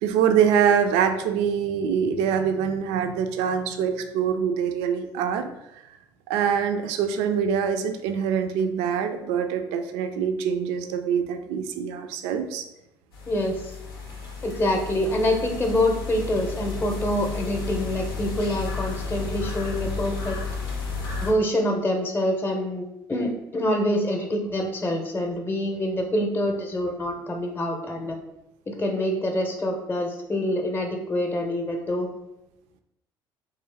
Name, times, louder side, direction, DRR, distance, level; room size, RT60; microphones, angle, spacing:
voice 1, 0.0-5.5 6.3-12.6, right 7 dB, 60° right, 7 dB, 0.4 m, -24 dB
sound 1, 13.1-21.3, left 4 dB, 80° left, 0.6 m, -32 dB
voice 2, 13.3-13.8 14.4-20.4 21.2-28.2 28.7-32.1, left 1 dB, 15° left, 4 dB, 0.7 m, -26 dB
3.4 x 3.0 x 3.3 m, 0.87 s
figure-of-eight pair, 55°, 12 cm